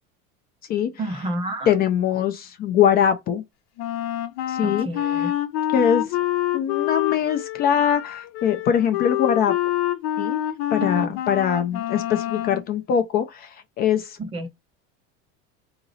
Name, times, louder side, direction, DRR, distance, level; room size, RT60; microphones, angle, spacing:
voice 1, 1.0-1.7 4.6-5.3 10.8-11.1 14.2-14.5, right 1 dB, 20° right, 0.5 m, -30 dB
voice 2, 1.7-3.4 4.5-4.9 5.2-5.3 5.7-6.2 6.5-9.5 10.2-10.4 10.7-14.2, left 8 dB, 30° left, 0.4 m, -22 dB
Wind instrument woodwind instrument, 3.8-12.6, left 13 dB, 70° left, 0.8 m, -26 dB
3.9 x 2.9 x 3.9 m
cardioid pair, 165°, 31 cm